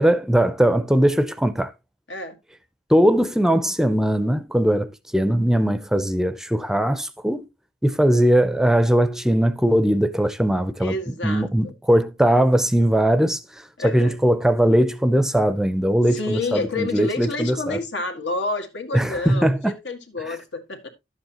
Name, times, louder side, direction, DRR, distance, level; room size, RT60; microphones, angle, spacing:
voice 1, 0.0-1.7 2.9-7.5 7.8-10.9 11.2-13.4 13.8-17.8 18.9-19.6 20.3-20.4, right 1 dB, 5° right, 0.5 m, -20 dB
voice 2, 10.8-11.7 13.8-14.2 16.1-20.9, left 2 dB, 85° left, 1.8 m, -29 dB
11.5 x 8.1 x 2.9 m
head